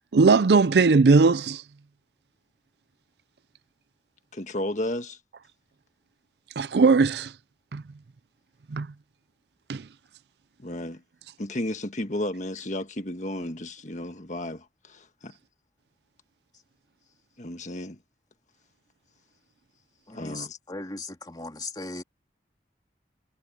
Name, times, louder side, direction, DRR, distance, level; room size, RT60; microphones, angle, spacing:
voice 1, 0.1-1.6 6.6-7.3 7.7-7.8 8.7-8.9 9.7-9.8, right 4 dB, 70° right, 0.5 m, -19 dB
voice 2, 4.3-5.2 10.6-11.0 11.4-15.3 17.4-18.0 20.1-20.6, left 1 dB, 45° left, 1.6 m, -33 dB
voice 3, 20.1-22.0, left 2 dB, 25° left, 2.5 m, -38 dB
head